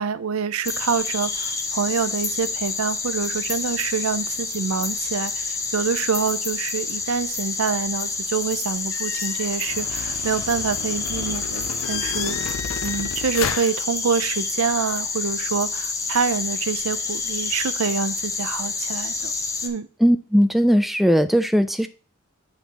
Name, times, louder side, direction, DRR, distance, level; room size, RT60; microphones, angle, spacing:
voice 1, 0.0-12.4 12.8-19.3 19.6-19.9, right 6 dB, 75° right, 14 dB, 0.5 m, -26 dB
sound 1, 0.6-19.7, left 4 dB, 15° left, 0.7 m, -28 dB
sound 2, 8.9-13.8, left 7 dB, 75° left, 0.6 m, -32 dB
voice 2, 20.0-21.9, equal, ahead, 9 dB, 0.3 m, -18 dB
9.4 x 5.3 x 3.0 m, 0.38 s
head